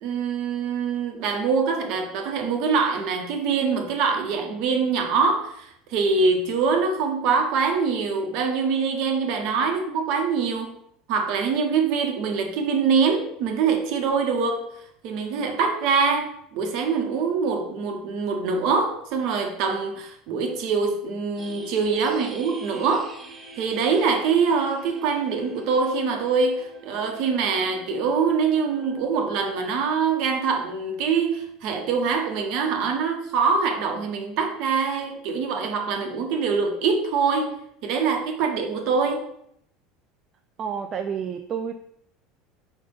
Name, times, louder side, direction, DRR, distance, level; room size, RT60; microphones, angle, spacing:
voice 1, 0.0-10.7 11.1-14.6 15.0-23.1 23.6-39.2, right 5 dB, 60° right, 4 dB, 1.1 m, -24 dB
sound 1, 21.4-29.0, right 2 dB, 15° right, 1.8 m, -45 dB
voice 2, 40.6-41.7, right 7 dB, 40° right, 5 dB, 0.4 m, -29 dB
5.1 x 3.4 x 5.4 m, 0.72 s
hypercardioid pair, 75°, 0 cm